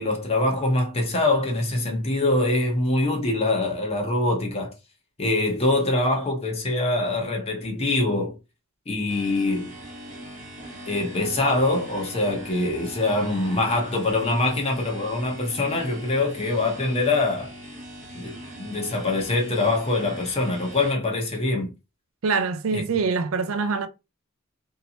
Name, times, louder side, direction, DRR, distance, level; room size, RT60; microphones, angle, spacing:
voice 1, 0.0-4.7 5.2-8.4 8.9-9.7 10.9-17.5 18.1-21.7 22.7-22.8, left 2 dB, 30° left, 0.8 m, -24 dB
sound 1, 9.1-20.9, right 1 dB, 35° right, 0.8 m, -41 dB
voice 2, 22.2-23.9, right 4 dB, 75° right, 0.5 m, -24 dB
3.1 x 2.7 x 2.7 m
head